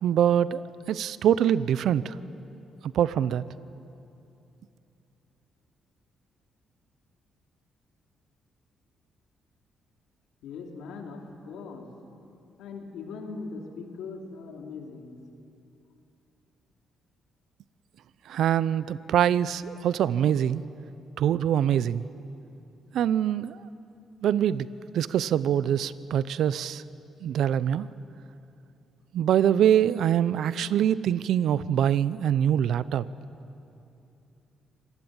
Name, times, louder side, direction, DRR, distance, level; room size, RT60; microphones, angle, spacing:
voice 1, 0.0-2.1 2.9-3.4 18.3-20.6 21.2-22.0 22.9-23.6 24.2-24.7 24.9-26.8 27.2-27.9 29.1-33.1, right 10 dB, 75° right, 17 dB, 0.6 m, -24 dB
voice 2, 10.4-11.9 12.6-15.2, left 4 dB, 85° left, 2 dB, 3.0 m, -40 dB
26.0 x 19.0 x 8.9 m, 2.8 s
cardioid pair, 90°, 0 cm